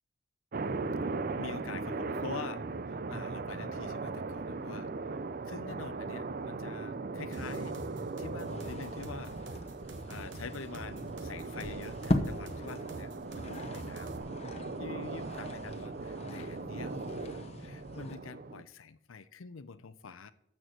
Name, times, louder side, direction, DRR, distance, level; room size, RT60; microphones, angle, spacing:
sound 1, 0.5-18.6, right 3 dB, 45° right, 0.5 m, -39 dB
voice 1, 1.4-5.2 5.5-7.8 8.2-9.6 10.1-14.2 14.8-20.3, left 5 dB, 80° left, 0.7 m, -46 dB
sound 2, 7.3-14.2, right 2 dB, 60° right, 1.3 m, -47 dB
sound 3, 8.4-18.2, left 1 dB, 30° left, 0.9 m, -40 dB
12.5 x 4.6 x 8.0 m
head